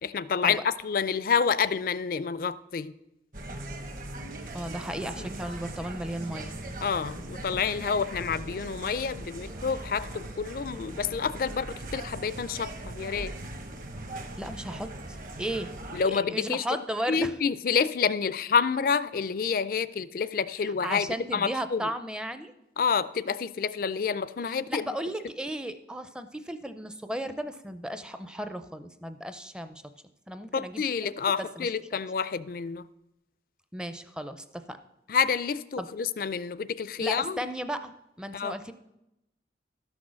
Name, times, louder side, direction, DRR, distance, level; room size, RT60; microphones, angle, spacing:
voice 1, 0.0-2.9 6.8-13.3 15.9-16.6 17.1-21.1 21.3-21.8 22.8-24.9 30.5-32.8 35.1-37.4 38.3-38.6, left 6 dB, 50° left, 17 dB, 0.4 m, -28 dB
sound 1, 3.3-16.0, right 1 dB, 50° right, 1.2 m, -40 dB
voice 2, 4.5-6.6 14.4-14.9 15.4-15.7 16.0-17.3 20.8-22.5 24.4-29.8 30.3-30.8 31.6-32.0 33.7-34.8 35.8-35.9 37.0-38.7, right 1 dB, 5° right, 10 dB, 0.5 m, -35 dB
12.5 x 6.2 x 6.3 m, 0.89 s
head